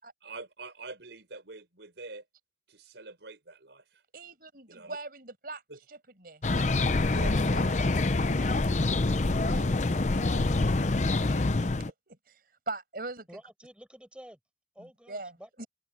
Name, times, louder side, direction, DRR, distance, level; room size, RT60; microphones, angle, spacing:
voice 1, 0.2-2.2 2.7-4.0 4.7-5.0 5.7-5.8 7.0-7.3, right 3 dB, 90° right, 4.8 m, -45 dB
voice 2, 4.1-5.6 5.9-8.6 9.0-11.7 12.1-13.3 14.8-15.7, right 3 dB, 55° right, 5.9 m, -44 dB
sound 1, 6.4-11.9, left 2 dB, 40° left, 0.7 m, -26 dB
voice 3, 13.3-14.4 14.8-15.7, equal, 5° right, 7.3 m, -50 dB
open air
head